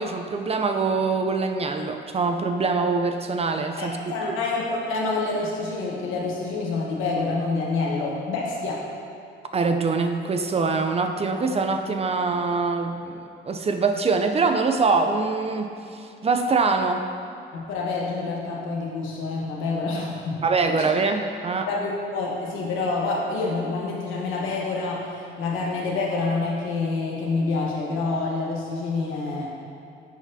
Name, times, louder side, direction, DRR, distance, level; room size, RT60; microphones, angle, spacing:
voice 1, 0.0-4.3 9.5-17.0 20.4-21.7, right 4 dB, 30° right, 5 dB, 0.4 m, -24 dB
voice 2, 3.8-8.8 17.5-20.4 20.8-20.9 21.7-29.5, left 3 dB, 90° left, -3 dB, 1.1 m, -27 dB
10.5 x 4.1 x 2.7 m, 2.6 s
cardioid pair, 90°, 20 cm